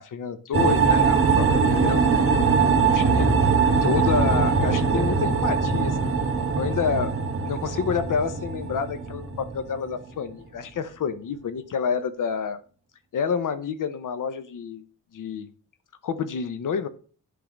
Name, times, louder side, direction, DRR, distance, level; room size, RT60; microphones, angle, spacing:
voice 1, 0.0-6.2 6.6-7.2 7.4-12.6 13.1-14.8 15.1-15.5 16.0-16.9, left 6 dB, 65° left, 11 dB, 0.8 m, -29 dB
sound 1, 0.5-10.1, right 5 dB, 40° right, 1.3 m, -22 dB
sound 2, 2.9-7.7, equal, ahead, 0.6 m, -35 dB
10.0 x 3.7 x 6.4 m, 0.41 s
wide cardioid pair, 145°, 33 cm